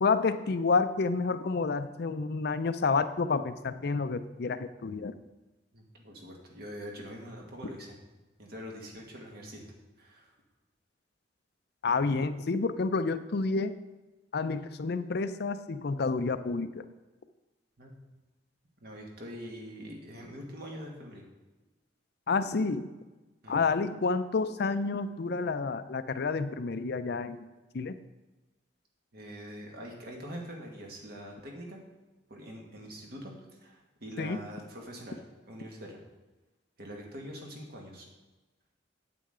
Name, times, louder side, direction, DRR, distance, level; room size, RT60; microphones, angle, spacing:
voice 1, 0.0-5.1 11.8-13.7 14.3-16.8 22.3-22.8 23.5-27.4 27.7-27.9 34.2-34.4, left 4 dB, 60° left, 12 dB, 0.5 m, -29 dB
voice 2, 5.7-8.0 8.4-9.7 10.0-10.3 17.8-17.9 18.8-21.3 23.4-23.6 29.1-31.8 32.3-35.2 35.5-36.0 36.8-38.1, equal, 60° right, 0 dB, 2.0 m, -44 dB
8.6 x 8.4 x 3.8 m, 1.1 s
head